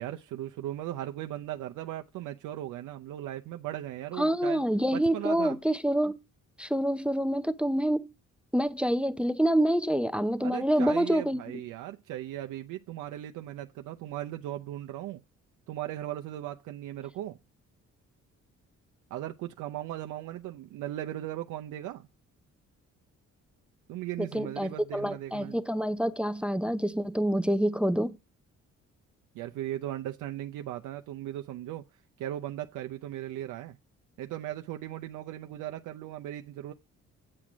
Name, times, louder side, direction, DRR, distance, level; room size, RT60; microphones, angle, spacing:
voice 1, 0.0-4.6 4.9-5.6 10.4-15.2 15.7-17.4 19.1-22.1 23.9-25.6 29.3-31.8 32.2-33.8 34.2-36.7, right 13 dB, 85° right, 0.6 m, -37 dB
voice 2, 4.2-6.2 6.6-8.1 8.5-11.4 24.3-28.2, equal, 5° right, 0.5 m, -27 dB
8.6 x 6.0 x 5.0 m
cardioid pair, 90°, 30 cm